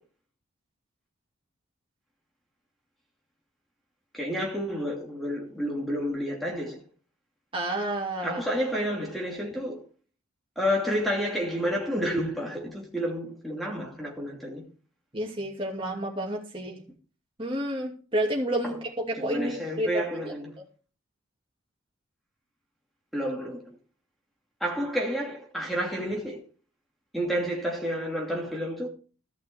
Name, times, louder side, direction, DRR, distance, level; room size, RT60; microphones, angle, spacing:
voice 1, 4.1-6.8 8.2-9.8 10.6-14.6 18.6-18.8 19.2-20.5 23.1-23.7 24.6-26.4 27.1-28.9, equal, ahead, 2.6 m, -30 dB
voice 2, 7.5-8.4 15.1-16.8 17.4-20.1, right 1 dB, 25° right, 2.7 m, -30 dB
14.5 x 6.0 x 4.6 m
head